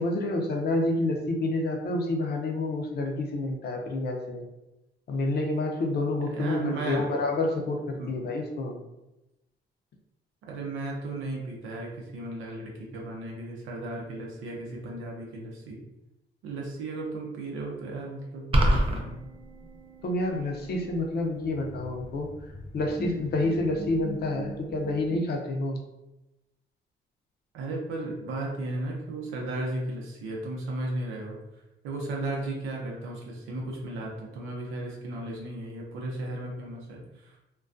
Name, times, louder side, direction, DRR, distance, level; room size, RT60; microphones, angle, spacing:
voice 1, 0.0-4.4 5.1-8.8 20.0-22.5 22.7-25.8, left 2 dB, 55° left, 2 dB, 0.5 m, -28 dB
voice 2, 6.3-7.1 7.9-8.1 10.4-15.8 16.4-19.2 27.5-31.4 31.8-37.3, right 2 dB, 90° right, -1 dB, 0.7 m, -35 dB
sound 1, 18.5-19.0, equal, 30° right, 0.4 m, -20 dB
sound 2, 18.8-25.2, left 1 dB, 5° left, 0.8 m, -43 dB
2.3 x 2.2 x 2.5 m, 0.95 s
cardioid pair, 90°, 20 cm